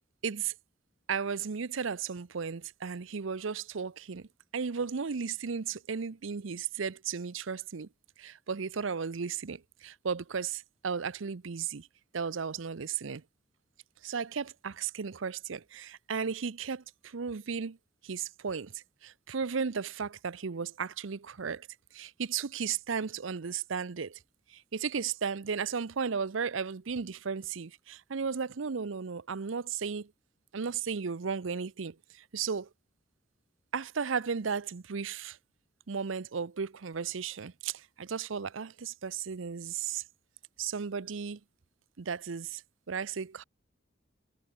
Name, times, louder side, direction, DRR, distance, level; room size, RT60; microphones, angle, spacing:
voice 1, 0.2-0.5 1.1-4.3 4.5-7.9 8.2-11.9 12.1-13.2 14.0-17.8 18.0-21.7 21.9-24.2 24.5-30.1 30.5-32.7 33.7-35.4 35.9-40.0 40.6-41.4 42.0-42.6 42.9-43.4, right 6 dB, 85° right, 0.7 m, -35 dB
head